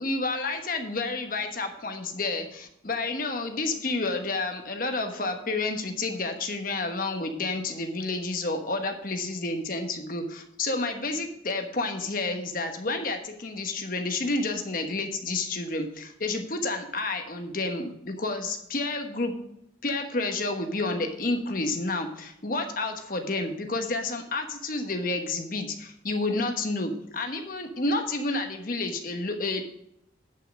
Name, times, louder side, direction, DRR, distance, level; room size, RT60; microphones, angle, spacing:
voice 1, 0.0-19.3 19.8-29.6, left 2 dB, 45° left, 5 dB, 1.2 m, -30 dB
10.5 x 5.6 x 5.4 m, 0.78 s
head